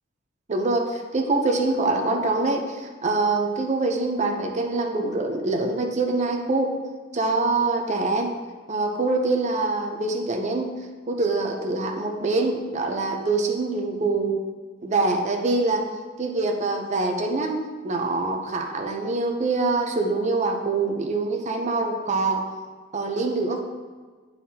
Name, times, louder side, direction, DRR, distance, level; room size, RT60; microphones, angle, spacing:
voice 1, 0.5-6.7 7.1-8.3 8.7-10.7 11.1-14.4 14.8-15.9 16.2-17.6 17.8-22.5 22.9-23.6, right 3 dB, 35° right, 2 dB, 0.6 m, -24 dB
9.2 x 4.1 x 2.8 m, 1.4 s
head